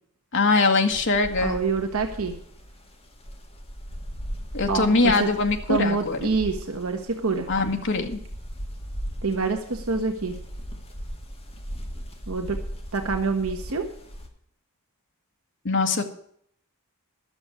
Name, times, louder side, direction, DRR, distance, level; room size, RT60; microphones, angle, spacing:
voice 1, 0.3-1.6 4.5-6.3 7.5-8.2 15.6-16.0, left 3 dB, 55° left, 4 dB, 1.7 m, -22 dB
sound 1, 0.9-14.3, equal, 25° left, 2.0 m, -38 dB
voice 2, 1.4-2.3 4.7-5.3 5.7-7.5 9.2-10.3 12.3-12.6 12.9-13.8, right 4 dB, 65° right, 4 dB, 1.3 m, -26 dB
11.5 x 7.0 x 9.6 m, 0.66 s
head